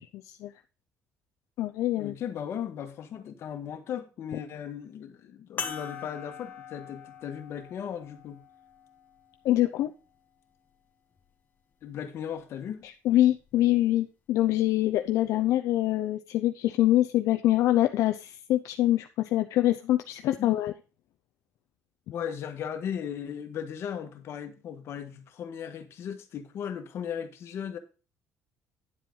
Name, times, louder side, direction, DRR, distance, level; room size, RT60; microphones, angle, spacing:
voice 1, 0.0-0.5 1.6-2.1 9.4-9.9 12.8-20.7, left 14 dB, 70° left, 0.6 m, -25 dB
voice 2, 2.0-8.4 11.8-12.8 20.4-20.5 22.1-27.8, left 8 dB, 50° left, 1.6 m, -37 dB
sound 1, 5.6-10.4 11.2-11.3 13.4-13.5, left 7 dB, 35° left, 1.6 m, -42 dB
10.0 x 7.6 x 3.9 m
cardioid pair, 150°, 5 cm